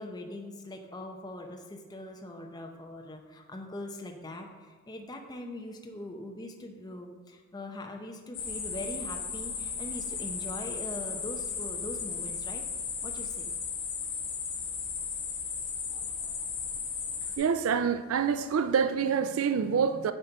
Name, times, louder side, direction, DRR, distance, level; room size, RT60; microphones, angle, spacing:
voice 1, 0.0-12.6 13.0-13.5, left 1 dB, 20° left, 0.7 m, -42 dB
sound 1, 8.3-17.4, left 6 dB, 60° left, 1.7 m, -35 dB
voice 2, 17.4-20.1, right 6 dB, 75° right, 0.4 m, -26 dB
8.9 x 4.3 x 5.4 m
head